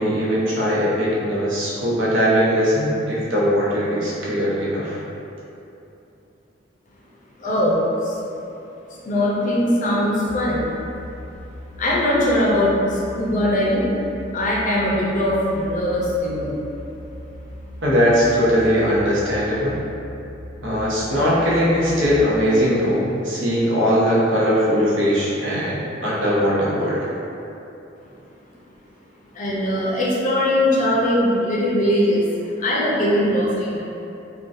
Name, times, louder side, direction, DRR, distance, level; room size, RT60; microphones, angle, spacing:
voice 1, 0.0-5.0 17.8-19.8 20.6-27.1, equal, 80° right, -7 dB, 0.8 m, -20 dB
voice 2, 7.4-8.2 9.0-10.7 11.8-13.8 14.3-16.5 29.3-32.2 32.6-33.8, left 1 dB, 40° left, -5 dB, 0.5 m, -20 dB
sound 1, 10.3-22.1, left 1 dB, 5° right, 0.9 m, -39 dB
3.7 x 2.2 x 2.5 m, 2.9 s
head